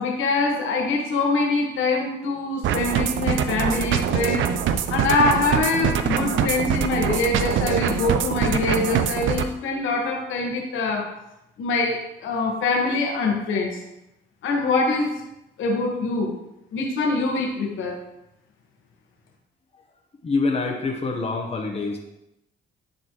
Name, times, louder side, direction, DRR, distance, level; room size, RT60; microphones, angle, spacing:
voice 1, 0.0-4.4 4.9-11.0 11.6-13.8 14.4-15.1 15.6-16.3 16.7-18.0, left 3 dB, 80° left, 0 dB, 1.5 m, -24 dB
sound 1, 2.6-9.5, right 8 dB, 75° right, 0.5 m, -24 dB
voice 2, 20.2-22.0, left 3 dB, 30° left, 0 dB, 1.0 m, -25 dB
10.0 x 4.2 x 3.0 m, 0.88 s
cardioid pair, 90°, 20 cm